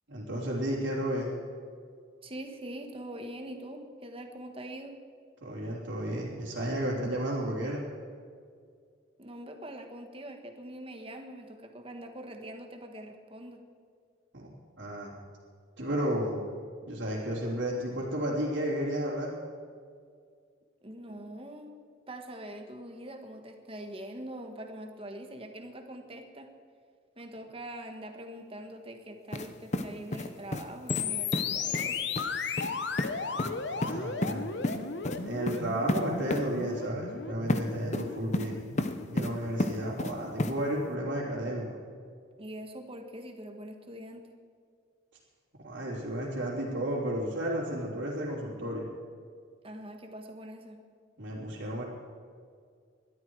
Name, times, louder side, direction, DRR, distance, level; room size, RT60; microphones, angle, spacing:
voice 1, 0.1-1.3 5.4-7.8 14.3-14.5 14.8-15.1 15.8-16.4 16.9-19.3 33.3-34.5 35.2-38.6 39.1-41.7 45.6-48.9 51.2-51.8, right 1 dB, 65° right, -9 dB, 3.4 m, -32 dB
voice 2, 2.2-5.0 9.2-13.6 20.8-21.8 22.1-26.5 27.2-32.0 32.4-32.7 42.4-44.2 49.6-50.8, right 1 dB, 30° right, 5 dB, 1.5 m, -43 dB
sound 1, 29.3-29.5 29.7-30.6 30.9-31.1 31.3-31.4 31.7-31.9 32.2-32.3 32.6-32.7 33.0-33.1 33.4-33.5 33.8-34.3 34.6-34.8 35.0-35.2 35.5-35.6 35.9-36.0 36.3-36.4 37.5-37.6 37.9-38.5 38.8-39.3 39.6-40.1 40.4-40.5, left 1 dB, 35° left, 0.8 m, -30 dB
sound 2, 30.9-40.9, left 5 dB, 60° left, 1.0 m, -36 dB
21.5 x 12.5 x 4.8 m, 2.1 s
head